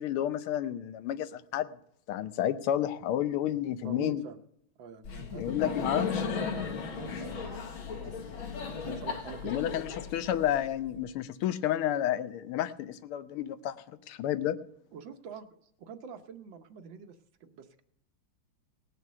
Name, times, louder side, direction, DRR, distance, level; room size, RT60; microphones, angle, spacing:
voice 1, 0.0-1.8 2.1-4.2 5.4-6.3 9.4-14.6, left 11 dB, 85° left, 12 dB, 1.6 m, -31 dB
voice 2, 3.8-4.4 4.8-6.3 6.9-10.0 14.9-15.5 15.8-17.8, right 6 dB, 70° right, 7 dB, 1.6 m, -46 dB
Laughter, 5.0-10.9, left 5 dB, 70° left, 2.2 m, -36 dB
18.0 x 6.2 x 6.6 m, 0.72 s
omnidirectional pair, 2.3 m